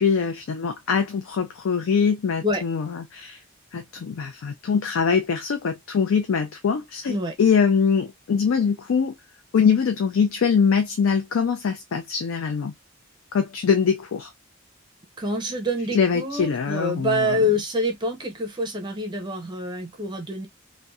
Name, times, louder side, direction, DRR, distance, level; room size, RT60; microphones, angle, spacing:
voice 1, 0.0-3.4 3.7-9.2 9.5-12.7 13.3-14.3 15.9-17.3, left 6 dB, 90° left, 0.4 m, -23 dB
voice 2, 15.2-20.5, left 1 dB, 25° right, 0.6 m, -26 dB
2.6 x 2.1 x 2.2 m
head